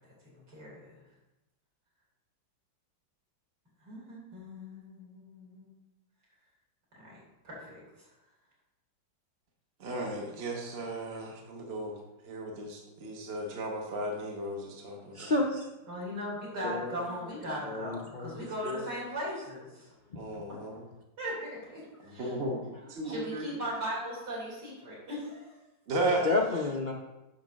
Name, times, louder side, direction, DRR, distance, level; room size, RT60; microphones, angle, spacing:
voice 1, 0.3-1.0 3.8-5.7 7.0-8.1 15.9-19.9 20.5-20.6 21.2-22.3 23.0-25.6 26.0-26.1, equal, 60° right, -5 dB, 4.3 m, -39 dB
voice 2, 9.8-15.3 20.1-20.8 22.0-23.5 25.9-26.3, right 1 dB, 35° right, 0 dB, 1.2 m, -35 dB
voice 3, 15.1-15.7 16.6-17.0 17.5-18.3 18.6-18.9 20.1-20.2 26.2-26.9, left 3 dB, 80° left, -1 dB, 0.4 m, -31 dB
10.0 x 3.8 x 6.3 m, 0.99 s
omnidirectional pair, 2.1 m